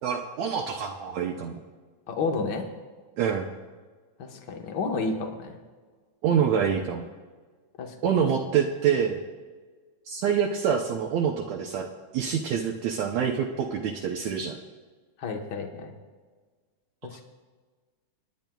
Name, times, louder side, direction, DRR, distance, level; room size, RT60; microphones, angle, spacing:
voice 1, 0.0-1.6 3.2-3.5 6.2-7.0 8.0-9.2 10.1-11.9 12.1-14.5, right 7 dB, 75° right, 1 dB, 1.9 m, -26 dB
voice 2, 2.1-2.7 4.2-5.6 7.8-7.9 15.2-15.9 17.0-17.2, left 4 dB, 55° left, 3 dB, 1.2 m, -31 dB
30.0 x 10.0 x 2.3 m, 1.4 s
omnidirectional pair, 3.5 m